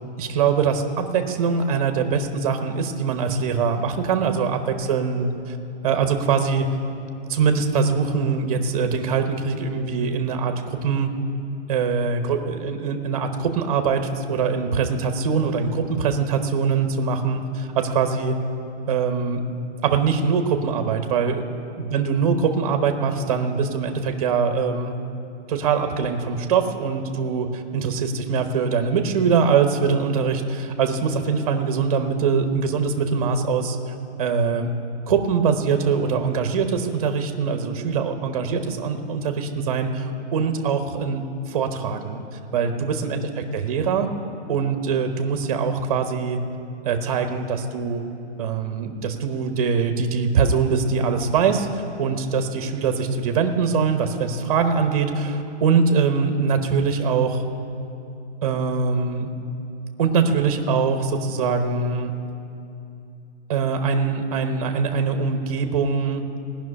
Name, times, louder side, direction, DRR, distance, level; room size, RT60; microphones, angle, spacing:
voice 1, 0.2-5.6 5.8-6.7 7.3-11.1 11.7-18.4 18.9-19.4 19.8-21.5 21.8-24.9 25.5-33.8 34.2-34.7 35.1-42.2 42.5-43.2 43.5-44.1 44.5-46.4 46.8-48.1 48.4-57.4 58.4-59.3 60.0-62.1 63.5-66.2, right 5 dB, 30° right, 6 dB, 1.0 m, -23 dB
17.0 x 6.1 x 9.7 m, 2.7 s
hypercardioid pair, 170°, 35 cm